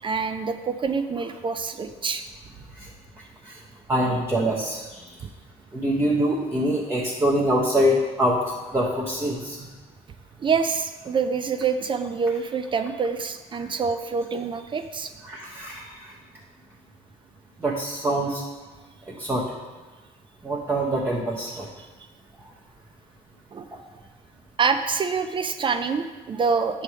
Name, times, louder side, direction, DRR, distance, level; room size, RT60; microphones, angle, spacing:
voice 1, 0.0-2.2 10.4-15.1 23.5-23.8 24.6-26.8, right 5 dB, 30° right, 8 dB, 0.3 m, -26 dB
voice 2, 3.9-5.1 5.7-9.7 15.2-16.1 17.6-18.4 19.1-19.4 20.4-21.7, equal, 15° right, -4 dB, 0.7 m, -25 dB
6.1 x 3.3 x 5.5 m, 1.3 s
cardioid pair, 110°, 17 cm